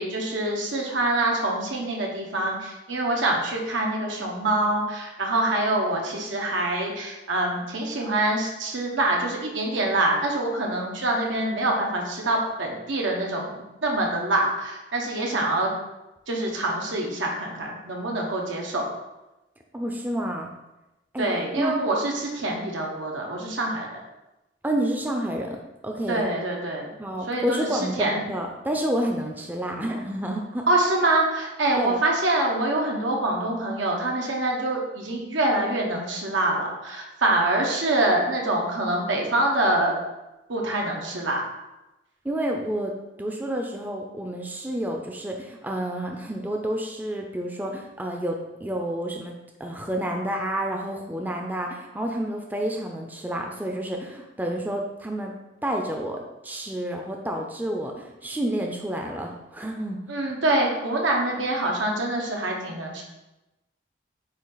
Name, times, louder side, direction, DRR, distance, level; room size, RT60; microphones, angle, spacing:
voice 1, 0.0-15.7 16.3-18.8 21.2-24.0 26.1-26.9 27.3-27.7 28.0-28.1 30.7-40.0 40.5-41.4 60.1-63.0, right 2 dB, 90° right, -1 dB, 1.3 m, -25 dB
voice 2, 19.7-20.5 21.1-21.3 21.6-21.7 24.6-26.3 27.0-30.7 31.8-32.0 42.2-49.3 49.6-55.3 55.6-60.0, right 1 dB, 10° right, 1 dB, 0.5 m, -29 dB
8.3 x 2.8 x 4.0 m, 0.99 s
head